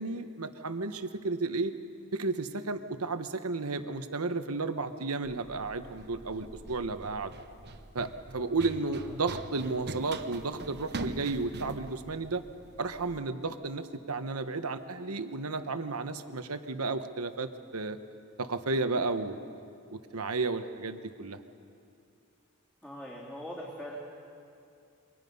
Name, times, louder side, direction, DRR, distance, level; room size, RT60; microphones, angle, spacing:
voice 1, 0.0-1.7 2.1-7.3 7.9-12.4 12.8-18.0 18.4-19.6 19.9-21.4, right 3 dB, 85° right, 9 dB, 1.2 m, -33 dB
Run, 5.2-13.2, right 2 dB, 50° right, 1.1 m, -44 dB
voice 2, 22.8-24.0, equal, 10° left, -7 dB, 3.6 m, -42 dB
28.0 x 24.0 x 5.5 m, 2.6 s
head